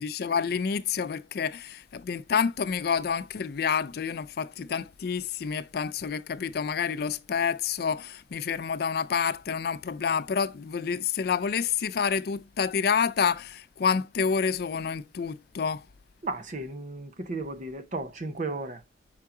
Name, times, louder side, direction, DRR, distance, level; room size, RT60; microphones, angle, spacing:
voice 1, 0.0-15.8, left 6 dB, 55° left, 0.4 m, -28 dB
voice 2, 16.2-18.8, right 2 dB, 45° right, 0.7 m, -34 dB
5.8 x 4.6 x 3.7 m
head